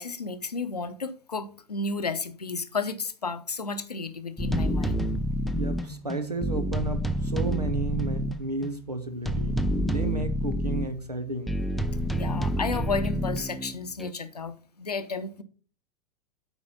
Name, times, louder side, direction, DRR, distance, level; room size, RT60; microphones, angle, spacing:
voice 1, 0.0-5.1 12.1-15.4, left 4 dB, 80° left, 0.8 m, -32 dB
sound 1, 4.4-8.8 9.2-10.9 11.5-14.1, equal, ahead, 0.4 m, -28 dB
voice 2, 5.5-11.6, right 3 dB, 85° right, 1.2 m, -32 dB
8.1 x 4.8 x 5.3 m
figure-of-eight pair, 90°, 20 cm